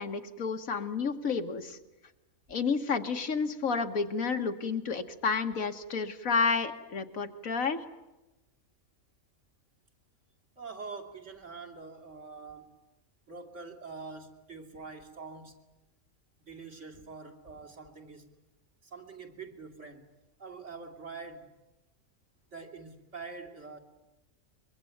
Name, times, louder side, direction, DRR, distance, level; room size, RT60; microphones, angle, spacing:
voice 1, 0.0-1.8 2.5-7.8, left 5 dB, 75° left, 6 dB, 1.9 m, -30 dB
voice 2, 10.6-12.7 13.3-15.6 16.5-18.3 18.8-20.0 20.4-21.5 22.5-23.8, right 4 dB, 60° right, 3 dB, 3.0 m, -45 dB
24.0 x 22.5 x 9.3 m, 1.0 s
omnidirectional pair, 1.4 m